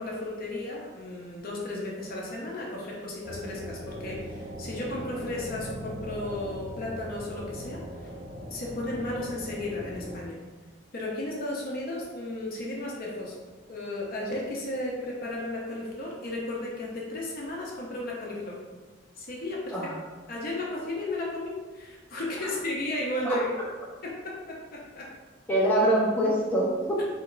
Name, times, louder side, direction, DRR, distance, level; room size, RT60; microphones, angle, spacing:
voice 1, 0.0-7.8 8.5-10.4 10.9-13.4 13.7-18.6 19.2-19.8 20.3-23.5 24.0-25.1, left 1 dB, 50° left, -3 dB, 0.7 m, -34 dB
sound 1, 3.2-10.2, equal, 35° right, 1.0 m, -40 dB
voice 2, 25.5-27.0, right 1 dB, 10° left, -6 dB, 0.7 m, -24 dB
2.9 x 2.8 x 3.8 m, 1.3 s
head